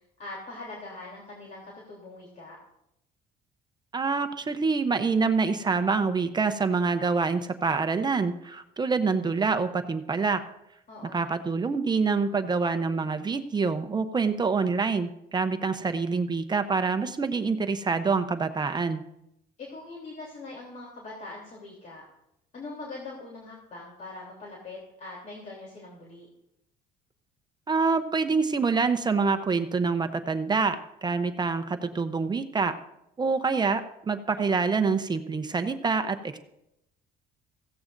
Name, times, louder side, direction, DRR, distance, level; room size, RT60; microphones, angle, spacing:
voice 1, 0.2-2.6 10.9-11.4 19.6-22.0 22.5-26.3, left 2 dB, 50° left, -3 dB, 3.3 m, -42 dB
voice 2, 3.9-10.4 11.1-19.0 27.7-30.8 31.0-32.7 33.2-33.8 34.1-36.4, right 4 dB, 25° right, 9 dB, 0.8 m, -26 dB
16.5 x 15.5 x 2.6 m, 0.81 s
cardioid pair, 110°, 17 cm